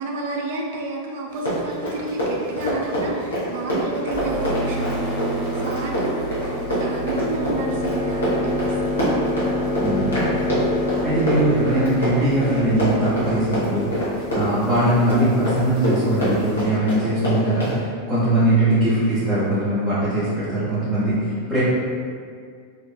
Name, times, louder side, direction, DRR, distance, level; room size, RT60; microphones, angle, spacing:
voice 1, 0.0-9.4 10.4-10.8 21.4-21.6, right 2 dB, 55° right, -1 dB, 0.4 m, -31 dB
Run, 1.3-17.8, equal, 70° left, 0.8 m, -25 dB
sound 1, 4.1-16.5, left 1 dB, 25° left, 0.6 m, -28 dB
voice 2, 9.8-10.6 11.0-21.6, right 1 dB, 5° right, -14 dB, 0.8 m, -21 dB
2.5 x 2.4 x 2.2 m, 2.1 s
figure-of-eight pair, 90°, 0 cm